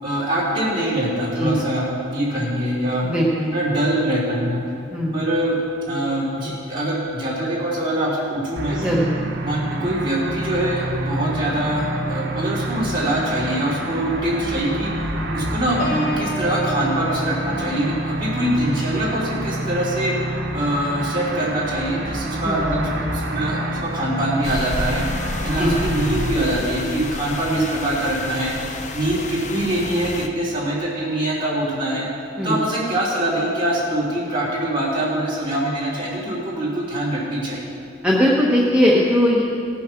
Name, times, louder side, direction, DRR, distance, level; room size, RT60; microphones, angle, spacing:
voice 1, 0.0-3.1 3.5-4.6 5.1-5.6 5.9-9.0 9.4-14.9 15.3-20.1 20.5-25.0 25.4-28.5 28.9-32.0 32.4-37.6, right 1 dB, 25° right, -7 dB, 3.3 m, -23 dB
voice 2, 3.0-3.5 4.9-5.2 8.7-9.1 22.4-22.6 25.6-25.7 27.5-27.6 32.4-32.6 38.0-39.4, equal, 5° right, -5 dB, 1.0 m, -19 dB
sound 1, 8.6-26.3, right 1 dB, 60° right, 1.2 m, -28 dB
Piano, 15.8-21.4 21.9-22.2, right 1 dB, 65° left, 3.3 m, -33 dB
sound 2, 24.4-30.3, left 2 dB, 35° left, 0.6 m, -30 dB
17.0 x 7.3 x 5.9 m, 2.6 s
head